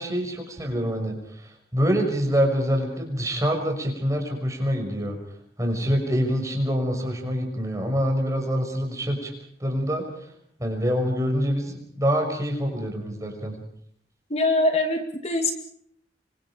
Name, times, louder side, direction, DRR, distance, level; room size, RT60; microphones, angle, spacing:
voice 1, 0.0-5.2 5.6-9.3 9.6-10.3 10.6-13.6, equal, 20° right, 3 dB, 6.1 m, -25 dB
voice 2, 14.3-15.5, left 2 dB, 35° left, 5 dB, 2.2 m, -23 dB
27.5 x 25.0 x 5.1 m, 0.63 s
head